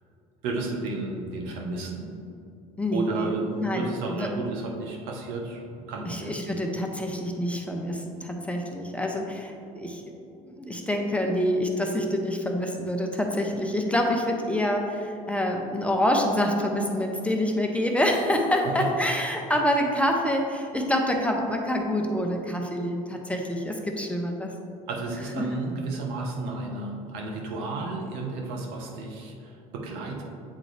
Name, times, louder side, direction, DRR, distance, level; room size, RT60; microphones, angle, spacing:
voice 1, 0.4-2.1 2.9-6.3 18.6-18.9 24.9-30.2, right 3 dB, 70° right, 0 dB, 1.1 m, -32 dB
voice 2, 2.8-3.3 3.6-4.3 6.0-10.0 10.4-24.5 25.4-25.5, left 1 dB, 5° left, 1 dB, 0.8 m, -26 dB
8.5 x 3.7 x 3.3 m, 2.7 s
hypercardioid pair, 75°, 18 cm